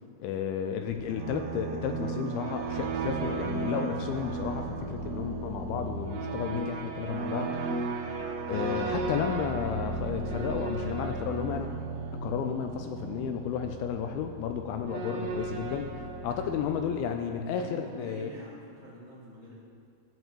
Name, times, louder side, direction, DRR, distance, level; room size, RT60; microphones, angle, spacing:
voice 1, 0.2-7.6 8.5-11.7 12.1-15.9 16.2-18.3, left 8 dB, 85° left, 6 dB, 2.2 m, -32 dB
sound 1, 0.9-17.5, right 3 dB, 75° right, 2.2 m, -35 dB
voice 2, 6.7-7.0 16.2-16.6 17.6-19.5, right 1 dB, 60° left, -9 dB, 0.4 m, -48 dB
12.5 x 4.3 x 7.0 m, 2.3 s
omnidirectional pair, 4.8 m